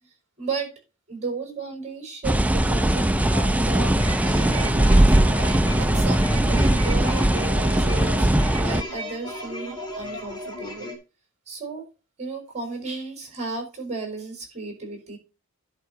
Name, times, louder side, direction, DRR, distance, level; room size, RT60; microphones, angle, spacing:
voice 1, 0.4-0.7 1.1-5.2 5.8-10.9 11.5-11.8 12.2-15.2, right 3 dB, 30° right, 2 dB, 5.2 m, -34 dB
sound 1, 2.2-8.8, right 1 dB, 5° right, 0.5 m, -20 dB
sound 2, 3.9-11.0, left 1 dB, 20° left, 2.6 m, -35 dB
11.0 x 4.7 x 5.8 m, 0.30 s
head